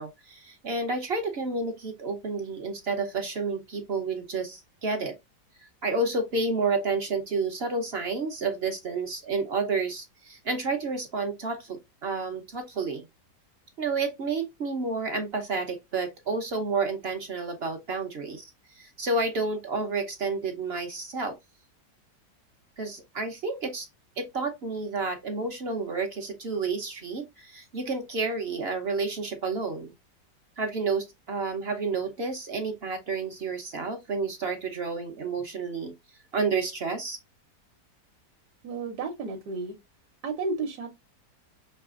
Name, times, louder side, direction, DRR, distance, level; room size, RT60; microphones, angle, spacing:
voice 1, 0.0-5.2 5.8-13.1 13.8-21.4 22.8-23.9 24.2-29.9 30.6-35.9 36.3-37.2, right 4 dB, 55° right, 0.7 m, -30 dB
voice 2, 38.6-39.8 40.2-41.1, right 3 dB, 70° right, 1.3 m, -32 dB
5.7 x 3.1 x 2.4 m
omnidirectional pair, 1.8 m